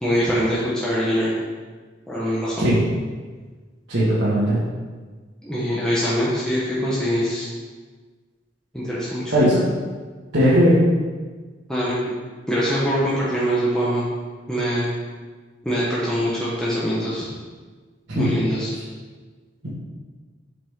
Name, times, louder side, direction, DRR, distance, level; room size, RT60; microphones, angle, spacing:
voice 1, 0.0-1.3 2.1-2.7 5.4-7.5 8.7-9.3 11.7-12.1 12.5-14.0 14.5-14.9 15.6-17.3 18.1-18.7, equal, 5° left, -8 dB, 1.2 m, -23 dB
voice 2, 3.9-4.6 9.3-9.6 10.3-10.8 18.1-18.2, equal, 75° right, -11 dB, 1.9 m, -17 dB
7.5 x 5.4 x 3.7 m, 1.4 s
head